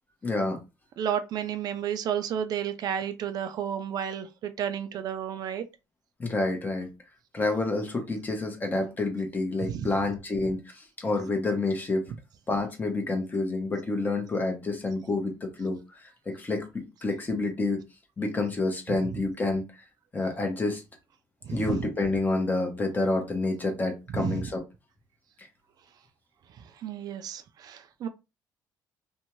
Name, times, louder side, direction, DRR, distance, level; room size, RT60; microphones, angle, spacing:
voice 1, 0.2-0.6 6.2-6.9 7.3-12.1 12.5-17.8 18.2-19.8 20.1-20.8 21.5-24.6 25.4-25.5, left 2 dB, 25° left, 0.9 m, -28 dB
voice 2, 1.0-5.6 9.6-9.9 21.4-21.8 24.1-24.4 26.8-28.1, right 8 dB, 60° right, 0.4 m, -32 dB
2.6 x 2.2 x 3.0 m
cardioid pair, 120°, 8 cm